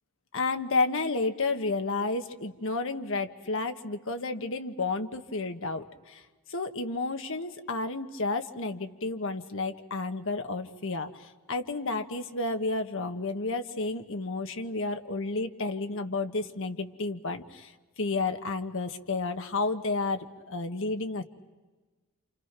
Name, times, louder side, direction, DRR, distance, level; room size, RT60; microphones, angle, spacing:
voice 1, 0.3-6.2 6.5-17.7 18.0-21.2, left 3 dB, 60° left, 7 dB, 1.4 m, -31 dB
29.0 x 27.5 x 6.0 m, 1.3 s
head